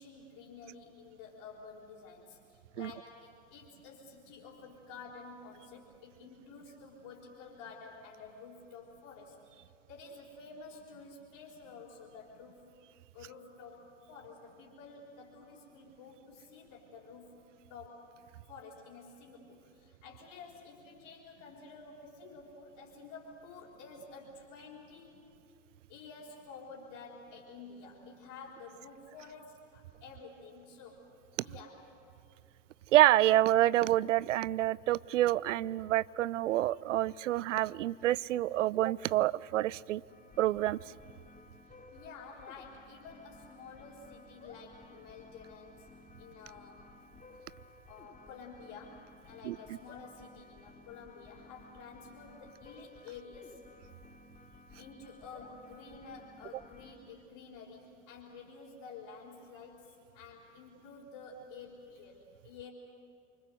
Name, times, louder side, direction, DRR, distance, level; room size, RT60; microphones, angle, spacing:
voice 1, 0.0-12.6 13.1-17.3 17.7-18.1 18.5-25.2 25.9-31.1 31.4-31.8 41.9-45.9 46.2-46.9 47.8-53.6 54.8-62.7, left 4 dB, 60° left, -5 dB, 4.3 m, -51 dB
voice 2, 32.9-40.0 40.4-40.8 49.4-49.6, right 14 dB, 80° right, 23 dB, 0.6 m, -27 dB
sound 1, 40.1-56.9, left 3 dB, 20° left, 3.2 m, -56 dB
27.0 x 24.5 x 7.9 m, 2.5 s
figure-of-eight pair, 75°, 37 cm